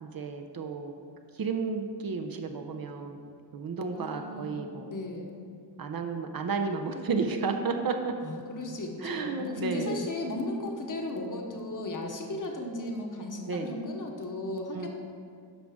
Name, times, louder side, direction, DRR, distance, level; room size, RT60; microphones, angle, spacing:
voice 1, 0.0-0.9 1.3-3.2 3.5-4.9 5.8-8.1 9.0-10.0 13.5-13.7 14.7-14.9, right 4 dB, 50° right, 5 dB, 0.6 m, -32 dB
voice 2, 3.9-4.6 4.9-5.3 8.2-14.9, left 2 dB, 45° left, 2 dB, 1.0 m, -35 dB
10.5 x 6.3 x 3.5 m, 2.3 s
wide cardioid pair, 155°, 45 cm